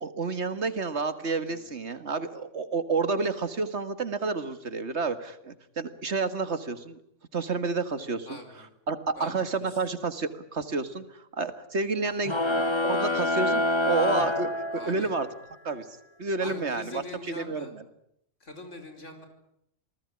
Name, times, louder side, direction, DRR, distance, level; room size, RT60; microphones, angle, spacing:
voice 1, 0.0-7.0 7.3-8.4 8.9-12.3 12.7-14.5 14.9-15.3 15.6-17.0 17.4-17.7, right 4 dB, 65° right, 11 dB, 2.2 m, -30 dB
voice 2, 8.3-8.7 9.2-9.8 12.0-12.2 14.7-15.1 16.4-17.7 18.4-19.3, left 2 dB, 85° left, 6 dB, 5.1 m, -43 dB
sound 1, 12.2-15.2, left 1 dB, 25° left, 1.7 m, -26 dB
28.0 x 19.5 x 9.8 m, 0.75 s
omnidirectional pair, 1.2 m